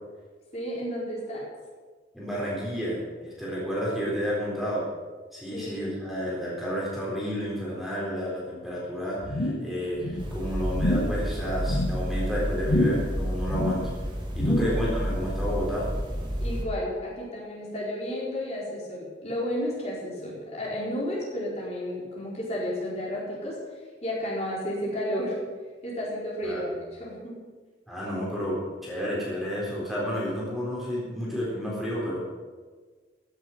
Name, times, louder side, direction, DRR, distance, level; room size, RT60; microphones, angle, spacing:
voice 1, 0.5-1.4 5.5-5.8 14.5-14.7 16.4-25.4 25.8-26.7 27.0-27.3, equal, 35° left, -5 dB, 4.4 m, -32 dB
voice 2, 2.1-4.9 5.3-13.9 14.4-15.9 26.4-26.7 27.9-32.2, equal, ahead, -6 dB, 3.9 m, -31 dB
sound 1, 9.2-9.7 10.0-10.3 10.7-11.2 11.6-12.0 12.6-13.2 13.4-13.9 14.3-14.9 15.2-15.3, left 1 dB, 85° left, 1.5 m, -27 dB
sound 2, 10.2-16.6, equal, 25° right, 2.1 m, -30 dB
16.0 x 7.9 x 7.8 m, 1.5 s
head